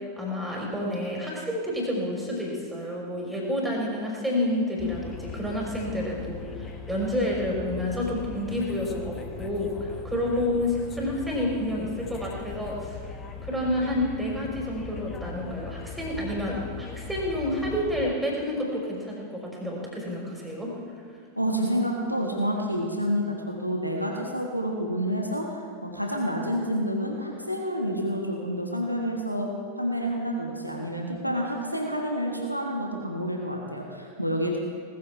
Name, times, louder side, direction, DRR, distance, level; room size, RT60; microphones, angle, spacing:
voice 1, 0.2-13.0 13.4-20.7, left 1 dB, 5° right, -3 dB, 4.0 m, -29 dB
sound 1, 4.8-18.1, left 5 dB, 25° left, 1.2 m, -39 dB
voice 2, 21.4-29.5 29.8-34.6, equal, 90° right, 0 dB, 1.5 m, -29 dB
19.0 x 14.5 x 3.3 m, 2.1 s
figure-of-eight pair, 90°, 0 cm